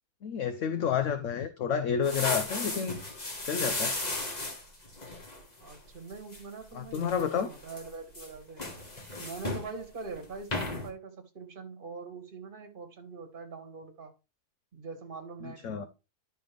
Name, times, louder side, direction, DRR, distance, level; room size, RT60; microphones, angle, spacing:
voice 1, 0.2-3.0 3.4-4.0 6.7-7.5 15.4-15.9, left 7 dB, 60° left, 0.9 m, -30 dB
sound 1, 2.0-5.8 6.1-6.4 6.9-7.9 8.1-9.7 10.1-10.3 10.5-10.9, left 2 dB, 25° left, 1.5 m, -35 dB
voice 2, 5.6-8.7 9.2-14.1 14.7-15.9, right 4 dB, 35° right, 1.5 m, -43 dB
11.5 x 5.5 x 3.3 m
omnidirectional pair, 1.7 m